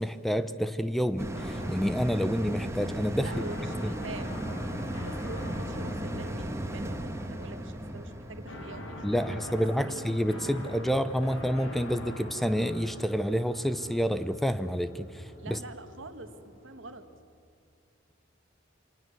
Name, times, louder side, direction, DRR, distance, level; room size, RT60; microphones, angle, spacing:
voice 1, 0.0-3.3 3.8-3.9 9.0-15.6, equal, ahead, 12 dB, 0.6 m, -29 dB
sound 1, 1.2-11.9 12.3-12.4, equal, 15° right, 1.5 m, -37 dB
sound 2, 1.3-17.2, equal, 85° left, 3.7 m, -43 dB
voice 2, 3.2-4.3 5.0-10.1 15.4-17.1, right 3 dB, 70° right, 9 dB, 1.5 m, -45 dB
24.5 x 19.0 x 7.1 m, 2.5 s
head